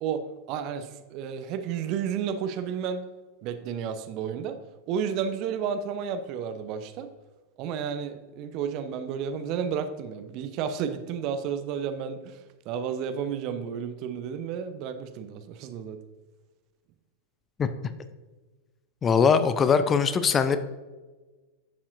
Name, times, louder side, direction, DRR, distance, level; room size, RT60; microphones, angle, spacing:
voice 1, 0.0-3.0 3.4-4.6 4.9-7.1 7.6-12.4 12.7-16.0, right 7 dB, 40° right, 10 dB, 0.7 m, -32 dB
voice 2, 19.0-20.6, left 6 dB, 20° left, 11 dB, 0.5 m, -21 dB
10.5 x 7.1 x 2.6 m, 1.3 s
figure-of-eight pair, 90°, 0 cm